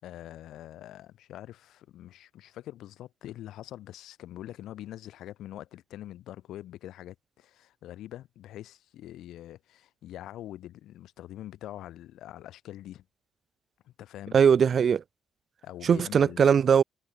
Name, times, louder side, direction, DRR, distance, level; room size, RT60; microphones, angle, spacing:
voice 1, 0.0-13.0 13.8-14.4 15.6-16.5, left 13 dB, 80° left, 6.0 m, -44 dB
voice 2, 14.3-15.0 15.8-16.8, right 7 dB, 50° right, 2.5 m, -20 dB
cardioid pair, 90°, 0 cm